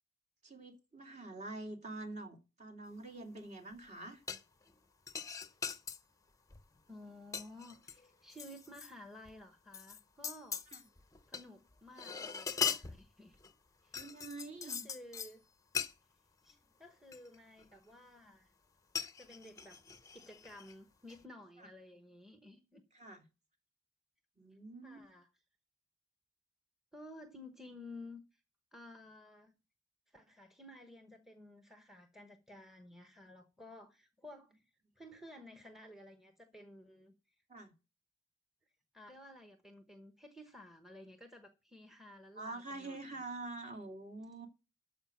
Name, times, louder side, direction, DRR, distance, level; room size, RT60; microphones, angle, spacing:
voice 1, 0.4-4.2 10.7-10.8 13.9-14.9 21.6-21.7 22.9-23.2 24.4-25.0 37.5-37.7 42.4-44.5, right 2 dB, 35° right, 2.3 m, -46 dB
sound 1, 4.3-4.7 5.1-6.0 6.5-6.8 7.1-8.9 9.3-9.4 9.7-11.4 11.7-13.5 13.9-15.3 15.7-15.9 16.5-16.6 17.1-17.8 19.0-20.7 21.1-21.2, left 7 dB, 15° left, 0.7 m, -41 dB
voice 2, 6.9-10.6 11.3-13.4 13.8-14.0 14.6-15.4 16.4-18.5 19.2-19.8 20.1-22.8 24.8-25.3 26.9-28.4 28.7-29.5 30.1-34.7 35.0-37.4 38.9-43.0, left 1 dB, ahead, 1.0 m, -54 dB
13.0 x 5.0 x 7.4 m
head